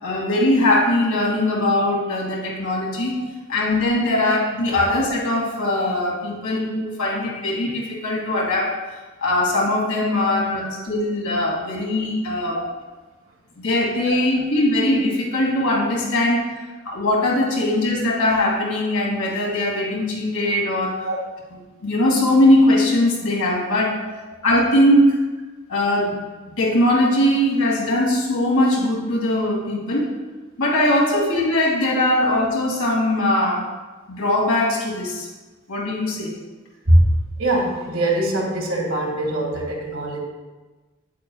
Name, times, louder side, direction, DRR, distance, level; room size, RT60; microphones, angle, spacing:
voice 1, 0.0-3.2 3.5-8.7 9.2-12.6 13.6-16.5 16.8-21.1 21.8-24.0 24.4-25.2 25.7-26.2 26.6-30.1 30.6-33.6 34.1-35.3 35.7-36.3, left 1 dB, 90° left, -3 dB, 2.5 m, -20 dB
voice 2, 14.0-14.5 21.1-21.2 31.1-31.2 32.1-32.2 36.9-37.1 37.4-40.2, right 1 dB, 70° right, -1 dB, 1.9 m, -21 dB
9.2 x 8.3 x 2.4 m, 1.3 s
head